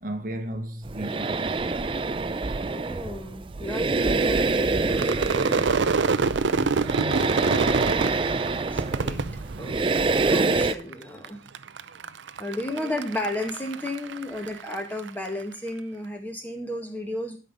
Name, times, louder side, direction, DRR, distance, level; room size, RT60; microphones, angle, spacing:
voice 1, 0.0-1.5 7.0-7.5, right 1 dB, 50° right, 1.1 m, -35 dB
sound 1, 0.8-10.7, right 3 dB, 30° right, 0.4 m, -26 dB
voice 2, 2.7-5.4 6.8-6.9 7.3-8.2 8.5-9.2 9.6-11.4 12.4-17.4, left 1 dB, 10° left, 1.6 m, -34 dB
Crowd / Fireworks, 4.9-10.3 10.6-11.3 11.5-15.1, right 4 dB, 90° right, 0.6 m, -26 dB
12.0 x 5.6 x 5.2 m
head